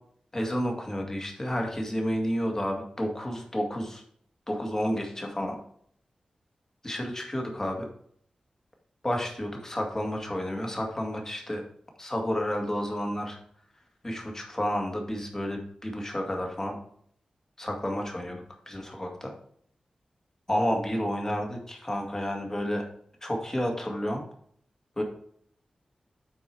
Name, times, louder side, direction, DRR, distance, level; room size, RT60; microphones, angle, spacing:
voice 1, 0.3-4.0 4.5-5.6 6.8-7.9 9.0-11.6 12.0-13.4 14.0-16.8 17.6-19.3 20.5-22.8 23.2-24.2 25.0-25.1, equal, 25° left, 1 dB, 2.0 m, -30 dB
7.9 x 4.8 x 4.6 m, 0.63 s
wide cardioid pair, 80°, 2 cm